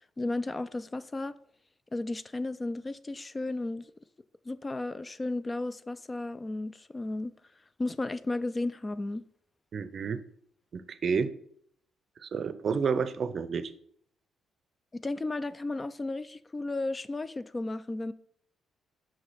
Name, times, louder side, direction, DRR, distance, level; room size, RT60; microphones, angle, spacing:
voice 1, 0.2-1.3 1.9-3.9 4.5-7.3 7.8-9.2 14.9-18.1, left 2 dB, 25° left, 0.3 m, -34 dB
voice 2, 9.7-10.2 10.7-11.3 12.2-13.7, right 5 dB, 50° right, 0.5 m, -30 dB
6.0 x 4.8 x 4.2 m
cardioid pair, 90°, 0 cm